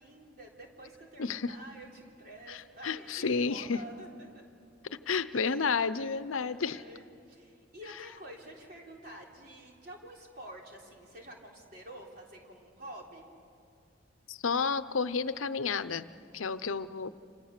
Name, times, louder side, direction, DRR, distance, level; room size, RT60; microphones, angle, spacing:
voice 1, 0.0-4.4 6.4-13.2, right 1 dB, 45° right, -1 dB, 3.7 m, -49 dB
voice 2, 1.2-1.5 2.5-3.8 4.9-6.8 14.3-16.1 16.3-17.1, left 5 dB, 85° left, 13 dB, 0.7 m, -31 dB
29.5 x 26.5 x 6.7 m, 2.6 s
head